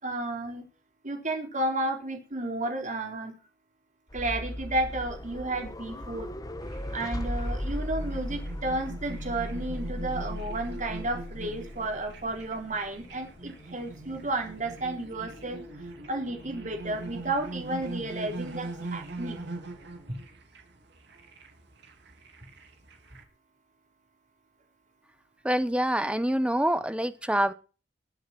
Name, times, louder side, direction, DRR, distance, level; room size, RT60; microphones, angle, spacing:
voice 1, 0.0-0.6 1.0-3.3 4.1-6.3 6.9-15.6 16.1-19.4 20.1-20.2, right 2 dB, 40° right, 3 dB, 4.1 m, -32 dB
sound 1, 4.1-20.0, equal, 20° left, 1.7 m, -39 dB
sound 2, 6.6-23.2, right 2 dB, 65° right, 3.5 m, -42 dB
voice 2, 25.4-27.5, right 1 dB, 5° right, 12 dB, 1.0 m, -26 dB
20.5 x 8.0 x 6.2 m, 0.36 s
head